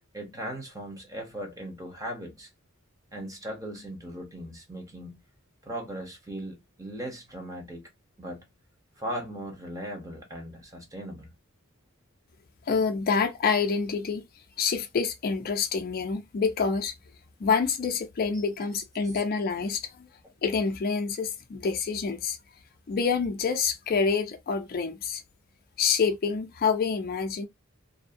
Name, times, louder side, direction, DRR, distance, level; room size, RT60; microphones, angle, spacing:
voice 1, 0.1-2.5 3.1-5.2 5.6-7.9 8.2-8.5 9.0-11.3, right 1 dB, 15° right, 0.8 m, -38 dB
voice 2, 12.7-14.2 14.6-16.9 17.4-20.1 20.4-22.4 22.9-25.2 25.8-27.5, left 5 dB, 45° left, 0.4 m, -27 dB
2.5 x 2.1 x 2.5 m
head